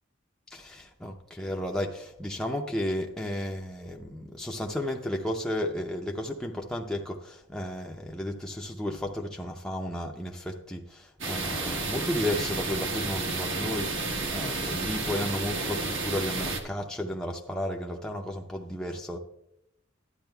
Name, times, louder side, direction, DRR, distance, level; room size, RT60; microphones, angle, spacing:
voice 1, 0.5-19.2, left 1 dB, 5° left, 0.5 m, -33 dB
sound 1, 11.2-16.6, right 3 dB, 65° right, 1.2 m, -31 dB
12.0 x 9.6 x 2.3 m
head